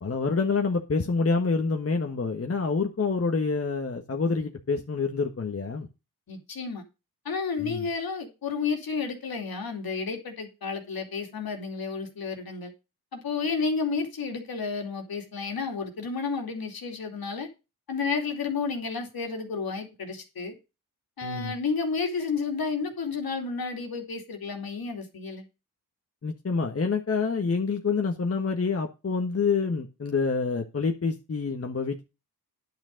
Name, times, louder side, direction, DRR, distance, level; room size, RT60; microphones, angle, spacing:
voice 1, 0.0-5.9 7.6-7.9 21.2-21.5 26.2-32.0, left 4 dB, 35° left, 1.5 m, -27 dB
voice 2, 6.3-6.8 7.2-12.7 13.1-17.5 17.9-20.5 21.2-25.5, left 5 dB, 65° left, 2.8 m, -31 dB
10.5 x 6.5 x 5.2 m
cardioid pair, 75°, 38 cm